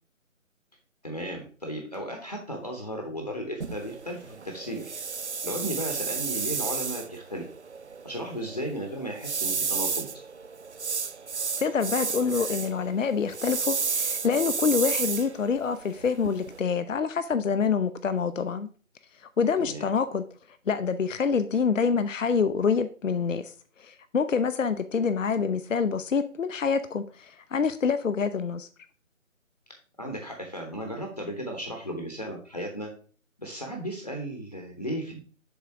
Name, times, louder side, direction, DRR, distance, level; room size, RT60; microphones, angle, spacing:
voice 1, 1.0-4.9 5.4-7.4 8.0-10.1 19.6-19.9 30.0-32.9 33.4-35.2, equal, 30° left, 2 dB, 0.8 m, -35 dB
sound 1, 3.6-16.6, right 5 dB, 55° right, 0.5 m, -32 dB
voice 2, 11.6-18.7 19.4-20.3 20.7-23.5 23.8-28.7, left 5 dB, 65° left, 12 dB, 0.6 m, -26 dB
7.0 x 3.7 x 4.8 m, 0.42 s
figure-of-eight pair, 155°, 41 cm